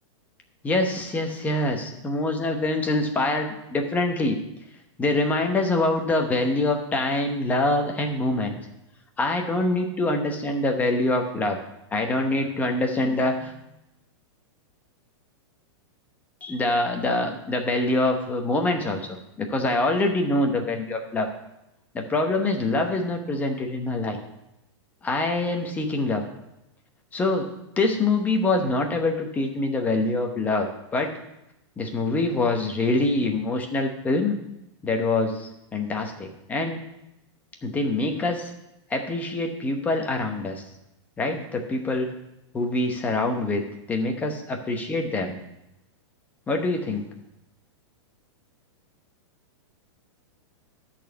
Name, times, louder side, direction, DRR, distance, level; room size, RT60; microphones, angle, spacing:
voice 1, 0.6-4.4 5.0-8.6 9.2-11.6 11.9-13.6 16.4-19.1 19.5-21.3 21.9-24.2 25.0-26.2 27.1-27.5 27.8-31.1 31.8-34.4 34.8-36.8 37.6-38.5 38.9-40.6 41.2-42.1 42.5-45.4 46.5-47.0, left 2 dB, 10° left, 3 dB, 0.9 m, -25 dB
12.5 x 4.3 x 6.7 m, 0.87 s
supercardioid pair, 165°, 15 cm